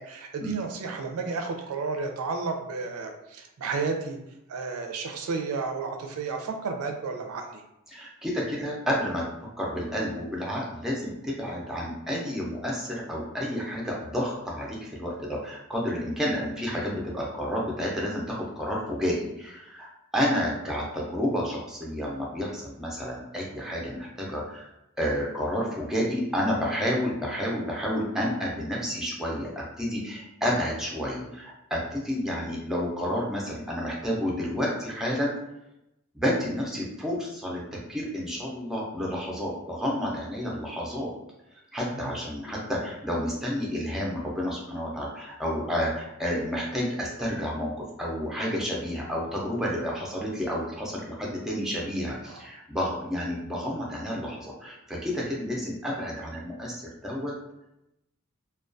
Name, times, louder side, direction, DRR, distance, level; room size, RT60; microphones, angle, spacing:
voice 1, 0.0-4.2 4.5-7.6 41.9-42.1 52.3-52.4, right 4 dB, 90° right, 4 dB, 0.4 m, -32 dB
voice 2, 7.9-9.2 9.6-24.7 25.0-35.4 36.1-41.1 41.7-57.3, equal, ahead, -4 dB, 0.4 m, -30 dB
2.2 x 2.2 x 2.5 m, 0.87 s
head